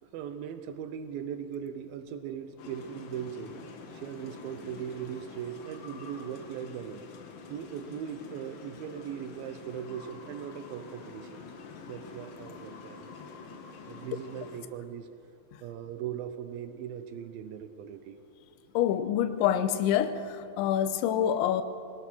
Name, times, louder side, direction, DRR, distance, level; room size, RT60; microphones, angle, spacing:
voice 1, 0.0-3.6 3.9-7.0 7.5-11.4 11.9-13.1 13.9-15.1 15.6-18.2, right 8 dB, 75° right, 10 dB, 2.2 m, -39 dB
sound 1, 2.6-14.6, left 4 dB, 60° left, 2.9 m, -47 dB
voice 2, 18.7-20.2 20.6-21.6, left 10 dB, 85° left, 11 dB, 3.2 m, -26 dB
23.0 x 19.0 x 6.3 m, 2.7 s
omnidirectional pair, 5.3 m